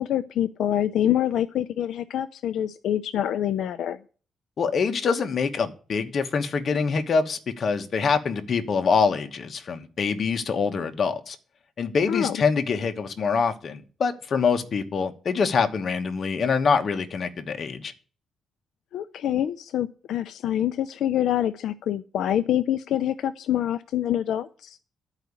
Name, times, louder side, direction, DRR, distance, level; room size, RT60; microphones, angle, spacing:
voice 1, 0.0-4.0 12.1-12.4 18.9-24.8, left 11 dB, 80° left, 11 dB, 0.5 m, -26 dB
voice 2, 4.6-11.4 11.8-17.9, left 5 dB, 45° left, 7 dB, 1.2 m, -25 dB
11.5 x 5.0 x 8.3 m, 0.39 s
cardioid pair, 135°, 0 cm